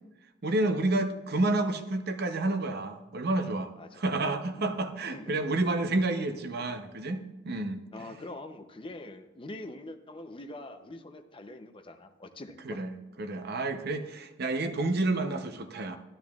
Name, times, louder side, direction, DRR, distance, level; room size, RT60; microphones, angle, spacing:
voice 1, 0.4-7.8 12.6-16.0, right 2 dB, 55° right, 7 dB, 0.7 m, -30 dB
voice 2, 4.6-5.4 7.9-12.8, left 2 dB, 25° left, 7 dB, 0.6 m, -44 dB
12.5 x 12.0 x 2.4 m, 1.1 s
head